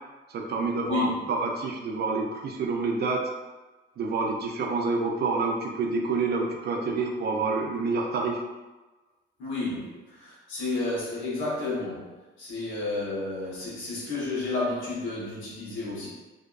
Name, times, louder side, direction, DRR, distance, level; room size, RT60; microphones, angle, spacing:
voice 1, 0.3-3.2 4.0-8.4, right 3 dB, 55° right, 1 dB, 0.4 m, -28 dB
voice 2, 0.8-1.1 9.4-16.1, left 3 dB, 80° left, -6 dB, 1.0 m, -31 dB
2.7 x 2.2 x 2.3 m, 1.1 s
cardioid pair, 90°, 20 cm